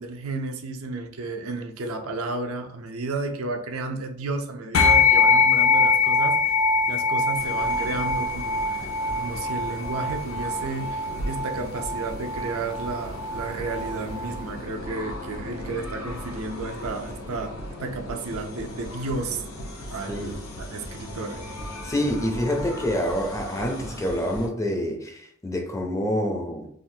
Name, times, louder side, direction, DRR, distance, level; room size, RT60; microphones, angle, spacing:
voice 1, 0.0-6.4 6.9-19.5 19.9-21.4, right 3 dB, 80° right, 4 dB, 0.5 m, -32 dB
sound 1, 4.7-14.4, left 4 dB, 65° left, 0.3 m, -23 dB
sound 2, 7.3-24.5, equal, 85° left, 0.9 m, -37 dB
voice 2, 21.8-26.7, equal, 15° left, 3 dB, 0.5 m, -27 dB
3.6 x 2.4 x 2.7 m, 0.66 s
head